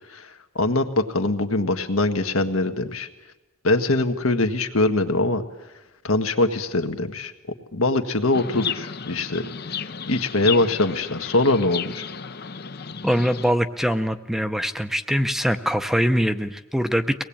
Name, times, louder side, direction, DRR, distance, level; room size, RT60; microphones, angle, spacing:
voice 1, 0.1-3.1 3.6-5.4 6.0-7.3 7.7-9.4 9.7-9.8 10.1-12.0, left 2 dB, 80° left, 6 dB, 1.7 m, -22 dB
Chirp tweet, 8.3-13.5, left 7 dB, 50° left, 0.7 m, -33 dB
voice 2, 13.0-17.2, equal, ahead, 9 dB, 0.7 m, -23 dB
23.5 x 19.0 x 8.7 m, 1.0 s
head